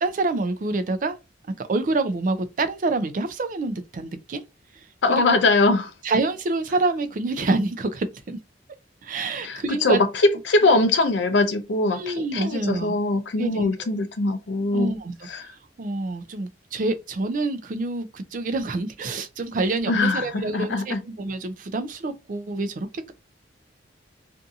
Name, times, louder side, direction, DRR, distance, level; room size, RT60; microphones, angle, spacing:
voice 1, 0.0-1.2 1.6-4.4 5.1-5.2 6.0-8.4 9.0-10.0 10.6-10.8 11.9-13.0 13.4-13.9 14.7-15.1 15.4-23.1, right 3 dB, 45° right, 0.4 m, -27 dB
voice 2, 5.0-5.9 9.4-14.9 15.2-15.5 19.9-21.0, left 2 dB, 80° left, 0.5 m, -22 dB
2.6 x 2.6 x 2.4 m
head